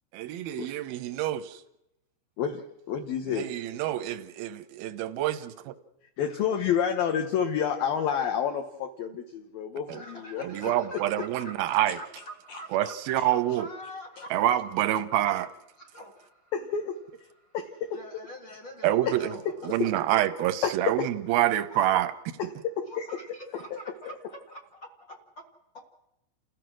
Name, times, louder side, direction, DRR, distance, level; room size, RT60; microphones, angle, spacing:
voice 1, 0.1-1.6 3.3-5.7 10.4-12.0 12.7-13.7 14.3-15.5 18.8-19.3 19.7-22.1, right 13 dB, 80° right, 2.2 m, -27 dB
voice 2, 2.9-3.5 6.2-9.8 10.3-10.4 11.9-12.0 12.5-12.6 16.5-17.0 17.5-17.9 20.6-21.1 22.6-23.1 23.7-23.8, left 8 dB, 70° left, 2.4 m, -29 dB
voice 3, 9.9-14.5 15.7-16.5 17.4-17.5 17.9-19.9 21.7-21.8 22.9-25.4 25.7-25.8, equal, 45° left, 1.4 m, -45 dB
29.5 x 15.5 x 6.2 m
omnidirectional pair, 5.4 m